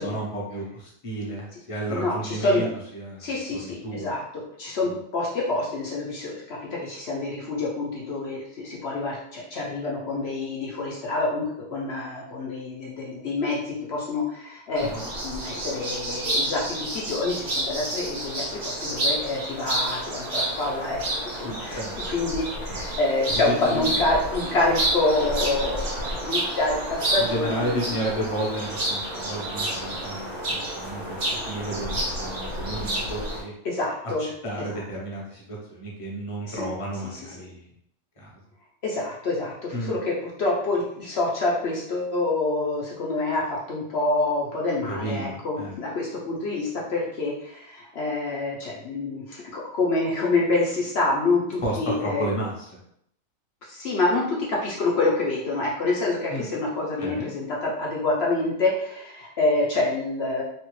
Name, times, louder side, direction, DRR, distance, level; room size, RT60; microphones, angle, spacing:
voice 1, 0.0-2.7 2.9-3.3 3.6-4.1 4.8-5.0 14.8-15.0 21.4-22.0 22.7-22.8 23.3-24.0 27.2-31.2 31.4-33.5 34.2-37.7 38.2-38.3 39.7-40.0 44.9-45.7 51.6-52.7 56.3-56.5 57.0-57.3, right 1 dB, 30° left, -4 dB, 0.7 m, -32 dB
voice 2, 1.9-2.7 3.2-21.8 22.1-27.8 33.6-34.3 36.5-36.6 37.1-37.2 38.8-52.3 53.6-60.4, left 2 dB, 55° left, -3 dB, 0.8 m, -27 dB
sound 1, 14.8-33.4, right 1 dB, 80° right, 1.5 m, -30 dB
3.2 x 2.4 x 3.0 m, 0.72 s
omnidirectional pair, 1.5 m